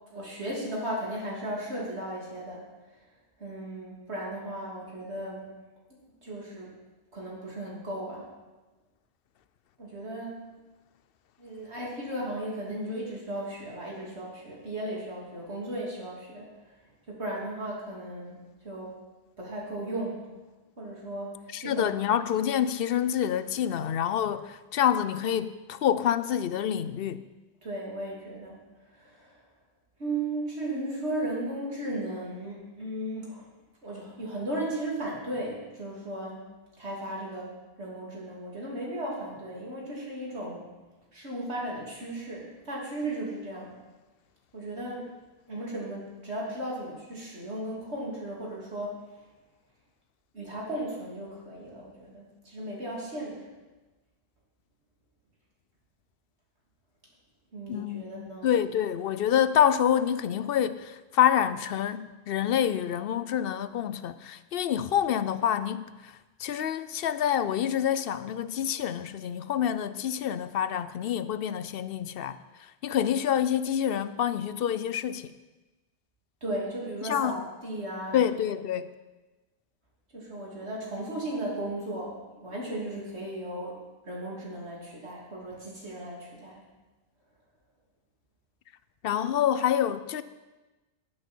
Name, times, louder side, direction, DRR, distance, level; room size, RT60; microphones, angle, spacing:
voice 1, 0.1-2.6 3.4-5.5 6.2-6.7 7.1-8.3 9.8-10.4 11.4-16.5 17.1-18.4 18.6-18.9 19.4-20.2 20.8-22.0 27.6-28.6 29.0-29.3 30.0-33.5 33.8-36.5 36.8-40.6 41.1-43.7 44.5-45.1 45.5-49.0 50.3-53.4 57.5-58.4 76.4-78.2 80.1-83.8 84.0-86.6, right 1 dB, 90° right, 3.3 m, -36 dB
voice 2, 21.5-27.2 57.7-75.3 77.0-77.4 78.1-78.9 89.0-90.2, left 9 dB, 65° left, 0.7 m, -27 dB
15.5 x 8.7 x 4.5 m
omnidirectional pair, 1.1 m